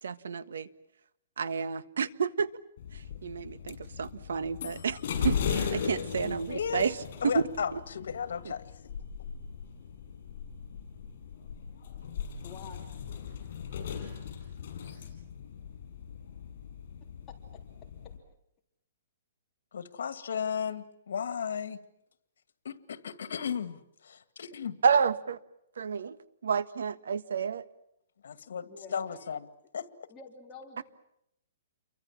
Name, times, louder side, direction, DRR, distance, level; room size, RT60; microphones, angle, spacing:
voice 1, 0.0-0.7 1.4-2.5 2.9-7.0 7.3-7.4 7.7-7.8 8.4-8.5 24.8-25.4 25.8-27.6, right 6 dB, 85° right, 14 dB, 1.6 m, -30 dB
sound 1, 2.8-18.2, left 7 dB, 50° left, 7.3 m, -38 dB
voice 2, 6.2-6.9 7.2-8.7 19.7-21.8 22.6-24.8 28.2-29.4 29.7-29.9, left 7 dB, 75° left, 12 dB, 2.1 m, -35 dB
voice 3, 12.4-12.9 17.5-17.6 28.7-29.2 30.1-30.8, left 4 dB, 15° left, 1 dB, 3.3 m, -48 dB
29.5 x 23.5 x 7.5 m, 0.77 s
hypercardioid pair, 170°, 0 cm